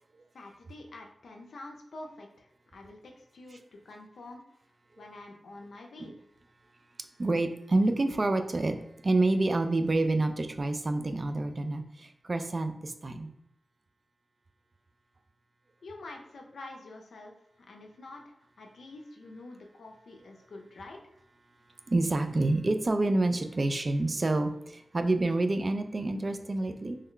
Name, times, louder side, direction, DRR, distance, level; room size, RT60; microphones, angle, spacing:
voice 1, 0.3-3.6 3.8-4.4 5.0-6.2 15.8-17.3 17.6-21.0, left 2 dB, 85° left, 1 dB, 0.4 m, -47 dB
voice 2, 7.2-8.8 9.0-13.3 21.9-27.0, right 2 dB, 50° right, 7 dB, 0.3 m, -28 dB
3.2 x 2.2 x 3.7 m, 0.79 s
cardioid pair, 40°, 0 cm